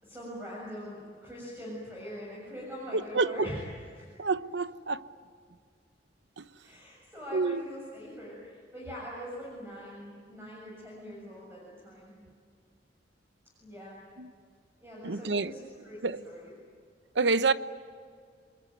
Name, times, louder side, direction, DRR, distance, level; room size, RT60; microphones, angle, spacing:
voice 1, 0.0-4.1 6.6-12.2 13.6-14.0 14.8-16.5, equal, 15° right, 7.3 m, -43 dB
voice 2, 2.9-3.5 4.2-5.1 6.4-6.5 7.3-7.6 14.2-14.3 15.0-15.5 16.0-16.2 17.1-17.5, right 3 dB, 80° right, 0.9 m, -28 dB
29.5 x 21.5 x 9.3 m
head